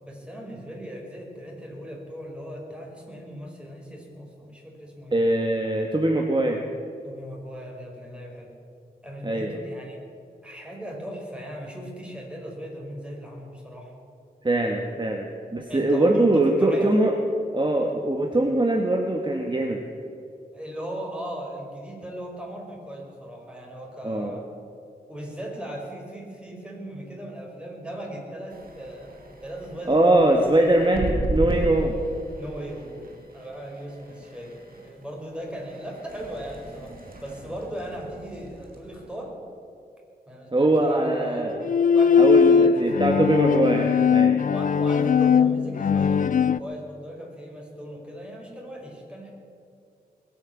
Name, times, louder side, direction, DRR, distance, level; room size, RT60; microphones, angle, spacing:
voice 1, 0.0-5.1 7.0-8.5 9.0-10.0 10.4-13.9 15.7-17.0 20.5-24.6 25.1-30.7 32.4-39.5 40.3-41.5 41.9-43.5 44.5-49.3, equal, 5° right, -1 dB, 5.3 m, -38 dB
voice 2, 5.1-6.6 9.2-9.6 14.4-17.1 17.5-19.8 24.0-24.4 29.9-32.0 40.5-41.5 42.2-44.4, right 1 dB, 30° right, 3 dB, 1.6 m, -22 dB
sound 1, 28.5-39.2, right 1 dB, 60° right, 2.8 m, -36 dB
Bowed string instrument, 41.5-46.6, left 6 dB, 55° left, 0.4 m, -19 dB
21.5 x 8.9 x 7.2 m, 2.5 s
cardioid pair, 50°, 17 cm